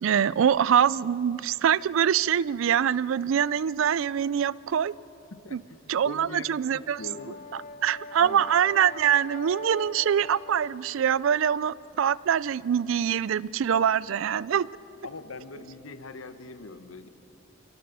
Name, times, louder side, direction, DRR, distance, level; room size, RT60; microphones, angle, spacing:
voice 1, 0.0-4.9 5.5-5.6 5.9-7.0 7.5-14.7, right 8 dB, 70° right, 21 dB, 0.4 m, -24 dB
voice 2, 5.3-7.5 8.2-8.5 15.0-17.1, left 3 dB, 85° left, 10 dB, 1.0 m, -42 dB
Brass instrument, 6.8-11.0, left 3 dB, 40° left, 0.8 m, -43 dB
24.0 x 17.5 x 6.7 m, 3.0 s
head